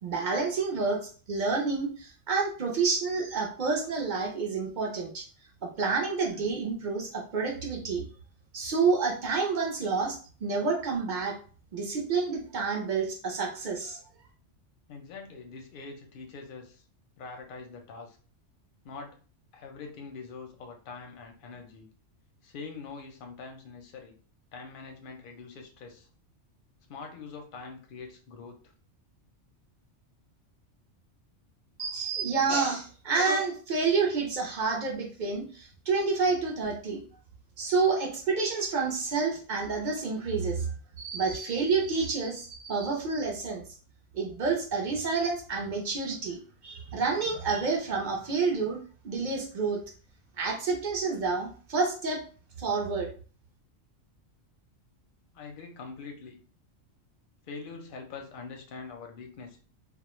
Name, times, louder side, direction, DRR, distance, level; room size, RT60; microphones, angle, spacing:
voice 1, 0.0-5.2 5.6-8.0 8.5-11.4 11.7-14.0 31.8-37.0 37.6-43.6 44.1-49.8 50.4-52.2 52.6-53.1, right 4 dB, 55° right, 1 dB, 0.5 m, -29 dB
voice 2, 14.9-16.8 17.2-18.2 18.8-19.2 19.5-21.9 22.4-24.1 24.5-26.1 26.9-28.7 55.3-56.4 57.4-59.6, left 4 dB, 60° left, 3 dB, 0.6 m, -44 dB
2.3 x 2.0 x 3.0 m, 0.40 s
omnidirectional pair, 1.3 m